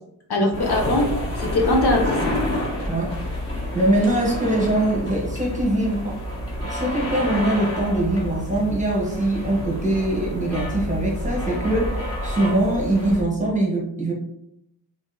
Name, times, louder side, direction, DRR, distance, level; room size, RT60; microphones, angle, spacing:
voice 1, 0.3-2.4, left 2 dB, 60° left, 0 dB, 1.0 m, -22 dB
sound 1, 0.5-13.2, left 1 dB, 35° left, 1.3 m, -29 dB
voice 2, 3.5-6.2 6.7-14.1, right 1 dB, 15° right, -2 dB, 1.0 m, -22 dB
3.6 x 3.6 x 3.8 m, 0.75 s
wide cardioid pair, 165°, 43 cm